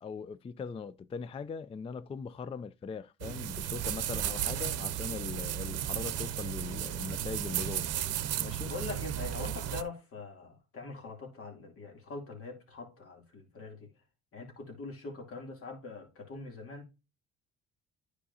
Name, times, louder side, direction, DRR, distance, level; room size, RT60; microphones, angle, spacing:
voice 1, 0.0-7.9 8.4-8.7, left 5 dB, 20° left, 0.4 m, -40 dB
sound 1, 3.2-9.8, right 11 dB, 60° right, 0.8 m, -34 dB
voice 2, 8.4-13.9 14.3-16.9, left 3 dB, 50° left, 2.8 m, -43 dB
10.0 x 4.9 x 2.7 m
supercardioid pair, 75°, 30 cm